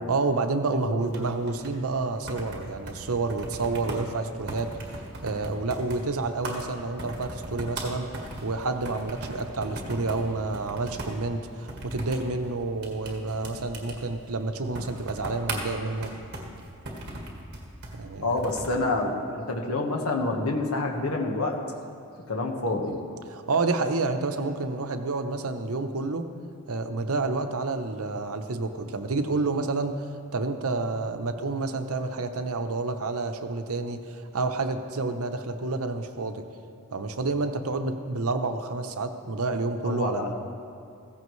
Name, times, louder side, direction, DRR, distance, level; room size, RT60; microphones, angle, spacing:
voice 1, 0.1-16.1 17.9-18.3 23.3-26.3 26.7-30.0 30.3-36.4 36.9-40.3, right 3 dB, 80° right, 7 dB, 0.8 m, -29 dB
voice 2, 0.9-1.3 18.2-21.6 22.3-22.9 39.8-40.3, left 2 dB, 85° left, 1 dB, 1.4 m, -28 dB
sound 1, 1.0-18.8, right 1 dB, 50° right, 1.7 m, -39 dB
15.5 x 15.0 x 3.2 m, 2.4 s
head